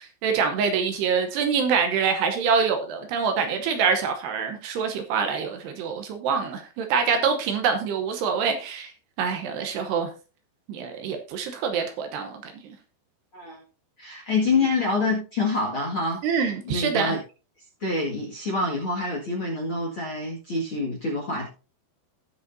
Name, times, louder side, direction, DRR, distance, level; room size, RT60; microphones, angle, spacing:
voice 1, 0.0-8.9 9.2-10.1 10.7-12.7 16.2-17.1, right 6 dB, 75° right, 2.8 m, -25 dB
voice 2, 14.0-16.2 16.6-17.2 17.8-21.5, left 3 dB, 45° left, 1.8 m, -26 dB
19.0 x 6.4 x 2.7 m
omnidirectional pair, 5.3 m